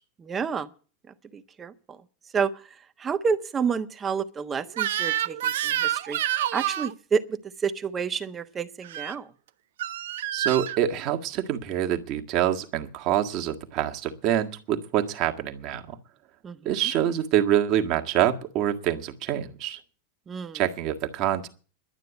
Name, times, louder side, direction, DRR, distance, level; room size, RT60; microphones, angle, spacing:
voice 1, 0.3-0.7 1.3-2.0 2.3-2.6 3.0-6.2 6.5-9.3 16.4-16.8 20.3-20.6, right 6 dB, 25° right, 1.2 m, -29 dB
Crying sobbing / Screech, 4.7-6.9 8.8-9.1 9.8-10.8, right 11 dB, 65° right, 0.6 m, -28 dB
voice 2, 10.3-16.0 16.7-19.8 20.5-21.5, right 11 dB, 45° right, 1.7 m, -26 dB
12.0 x 9.1 x 8.2 m
figure-of-eight pair, 90°, 0 cm